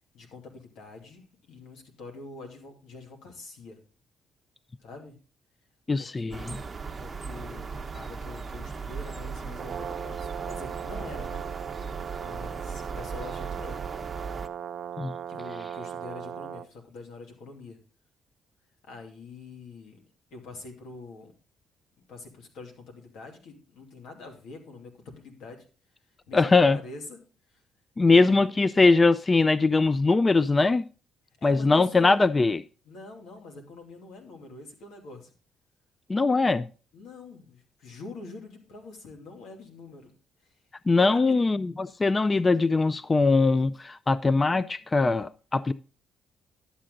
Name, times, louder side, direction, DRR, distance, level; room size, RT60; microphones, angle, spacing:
voice 1, 0.1-3.8 4.8-5.2 6.0-11.5 12.2-13.9 15.3-17.8 18.9-20.0 20.3-21.3 22.1-25.7 26.3-27.2 27.5-27.6 28.1-28.5 31.4-32.2 32.8-35.3 36.9-40.1 40.4-40.5 41.1-41.3, left 3 dB, 85° left, 2.6 m, -45 dB
voice 2, 5.9-6.6 15.0-15.2 26.3-26.8 28.0-30.9 31.4-32.6 36.1-36.7 40.9-45.7, left 3 dB, 25° left, 0.4 m, -21 dB
sound 1, 6.3-14.5, right 5 dB, 30° right, 0.9 m, -37 dB
Brass instrument, 9.5-16.7, right 8 dB, 60° right, 0.6 m, -38 dB
11.5 x 7.6 x 3.8 m
cardioid pair, 90°, 0 cm